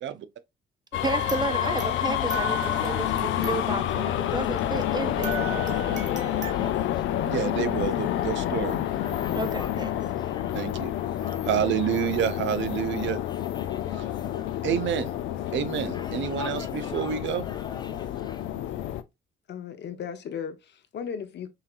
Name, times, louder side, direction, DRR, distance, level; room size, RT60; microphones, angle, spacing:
sound 1, 0.9-19.0, left 12 dB, 75° left, 0.5 m, -29 dB
voice 1, 1.0-6.7 9.3-9.9, right 3 dB, 20° right, 0.5 m, -33 dB
sound 2, 1.0-4.9 5.2-6.5, right 6 dB, 35° right, 1.3 m, -39 dB
sound 3, 2.6-18.5, left 4 dB, 20° left, 0.7 m, -46 dB
voice 2, 7.2-8.8 9.1-9.5 10.5-10.9 11.4-13.2 14.0-14.1 14.6-15.1 15.5-17.5, right 9 dB, 70° right, 0.6 m, -28 dB
voice 3, 19.5-21.5, left 7 dB, 60° left, 0.9 m, -36 dB
5.5 x 2.8 x 2.5 m
cardioid pair, 90°, 20 cm